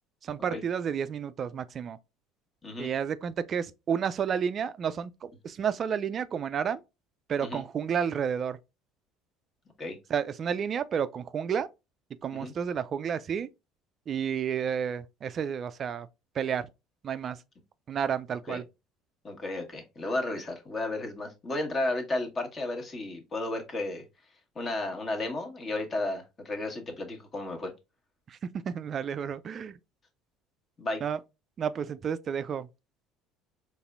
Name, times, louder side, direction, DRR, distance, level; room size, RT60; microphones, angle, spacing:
voice 1, 0.2-2.0 2.8-6.8 7.3-8.6 10.1-11.7 12.2-13.5 14.1-16.1 16.4-16.7 17.0-17.4 17.9-18.6 28.3-29.8 31.0-31.2 31.6-32.7, right 7 dB, 45° right, 0.3 m, -31 dB
voice 2, 19.2-24.0 24.5-27.7 30.8-31.0, left 2 dB, 35° left, 1.4 m, -33 dB
4.1 x 3.4 x 2.4 m
hypercardioid pair, 75°, 0 cm